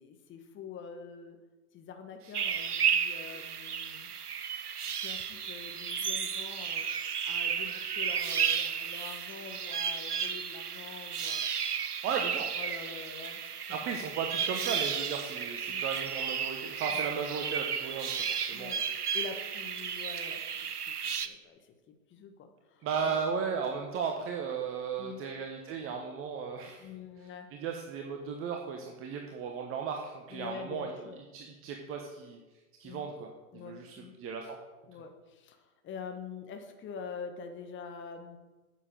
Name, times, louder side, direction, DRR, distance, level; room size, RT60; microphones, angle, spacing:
voice 1, 0.0-1.4 1.7-4.1 5.0-11.4 12.6-13.8 15.7-15.9 16.9-17.0 18.5-18.8 19.1-23.2 25.0-25.3 26.8-27.5 30.3-31.2 32.8-33.1 33.5-34.1 34.9-38.4, left 6 dB, 25° left, 6 dB, 1.6 m, -45 dB
sound 1, 2.3-21.3, right 7 dB, 80° right, 0.9 m, -33 dB
voice 2, 12.0-12.5 13.7-18.8 22.8-26.9 27.5-30.9 31.3-32.4 32.8-34.6, right 6 dB, 30° right, 2 dB, 1.2 m, -36 dB
9.8 x 7.4 x 6.7 m, 1.2 s
figure-of-eight pair, 95°, 45 cm